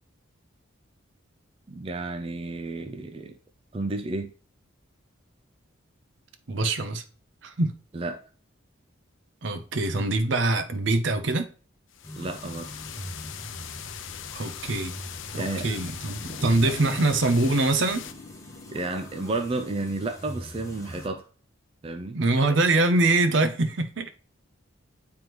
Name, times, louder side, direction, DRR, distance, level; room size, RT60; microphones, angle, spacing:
voice 1, 1.7-3.3 3.7-4.3 7.9-8.2 12.1-12.7 15.3-15.7 16.2-17.0 18.7-21.3 21.8-22.2, right 2 dB, 25° right, 0.4 m, -32 dB
voice 2, 6.5-7.0 7.4-7.7 9.4-11.5 14.3-14.9 15.3-18.1 22.1-24.1, right 2 dB, 65° right, 0.7 m, -24 dB
sound 1, 11.9-18.1, left 9 dB, 70° left, 0.5 m, -40 dB
sound 2, 12.0-21.1, equal, 15° left, 0.9 m, -43 dB
sound 3, 14.9-19.9, left 1 dB, 40° left, 1.1 m, -49 dB
9.3 x 3.5 x 3.0 m
head